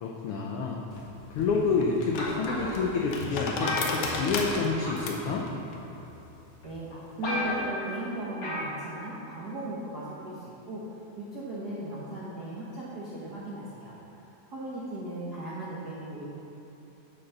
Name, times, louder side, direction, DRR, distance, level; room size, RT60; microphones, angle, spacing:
voice 1, 0.0-0.8 1.3-5.5, left 4 dB, 85° left, -1 dB, 1.2 m, -28 dB
sound 1, 0.9-7.6, left 3 dB, 65° left, 1.7 m, -36 dB
sound 2, 2.2-2.8 3.6-4.6 4.8-5.2 6.0-6.1 6.6-6.7 6.9-7.0 7.2-7.9 8.4-8.7 9.0-9.1, left 1 dB, 50° left, 2.8 m, -32 dB
voice 2, 6.6-10.8 11.2-14.0 14.5-16.2, right 1 dB, 60° right, -7 dB, 1.0 m, -37 dB
8.0 x 8.0 x 5.6 m, 2.9 s
omnidirectional pair, 3.4 m